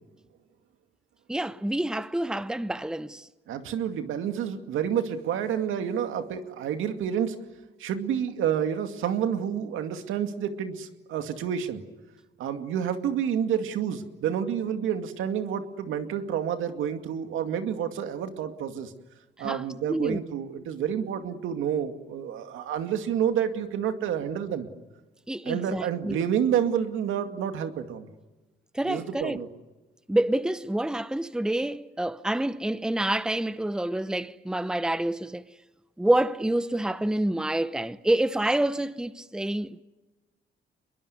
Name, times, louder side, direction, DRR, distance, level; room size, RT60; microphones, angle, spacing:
voice 1, 1.3-3.3 19.4-19.6 19.9-20.2 25.3-26.2 28.7-29.4 30.1-35.4 36.0-39.8, right 1 dB, 5° right, 0.9 m, -27 dB
voice 2, 3.5-7.4 7.8-11.8 12.4-18.9 19.4-24.7 25.4-28.1 28.8-29.5, right 8 dB, 85° right, 2.3 m, -29 dB
25.0 x 22.0 x 9.6 m
cardioid pair, 90°, 20 cm